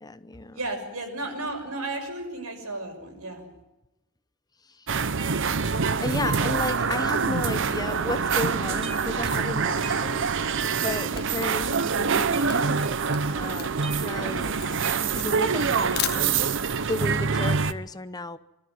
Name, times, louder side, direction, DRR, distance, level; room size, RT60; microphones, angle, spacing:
voice 1, 0.0-0.6 4.6-5.0 6.0-10.3 10.8-12.8 13.3-14.6 15.0-18.4, left 2 dB, 20° left, 13 dB, 0.7 m, -34 dB
voice 2, 0.5-3.5, right 2 dB, 90° right, 3 dB, 6.2 m, -33 dB
sound 1, 4.9-17.7, right 5 dB, 55° right, 0.8 m, -25 dB
sound 2, 7.9-9.3 9.6-10.4 10.8-11.3 11.6-13.4 13.8-15.4, right 4 dB, 25° right, 1.1 m, -42 dB
Camera, 10.5-16.7, left 11 dB, 50° left, 1.3 m, -36 dB
25.0 x 13.0 x 9.4 m, 0.99 s
head